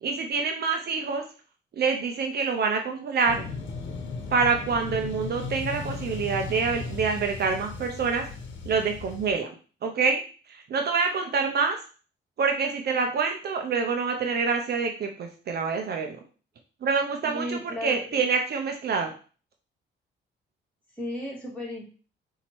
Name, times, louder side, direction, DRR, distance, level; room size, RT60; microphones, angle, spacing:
voice 1, 0.0-1.2 1.7-3.4 4.3-8.3 8.7-9.5 9.8-10.2 10.5-11.8 12.4-16.2 16.8-19.1, right 5 dB, 55° right, 4 dB, 0.7 m, -26 dB
sound 1, 3.3-9.3, left 4 dB, 70° left, 1.0 m, -36 dB
voice 2, 17.2-18.3 20.9-21.9, left 1 dB, 5° left, -5 dB, 2.5 m, -35 dB
4.1 x 2.8 x 4.5 m, 0.38 s
cardioid pair, 90°, 20 cm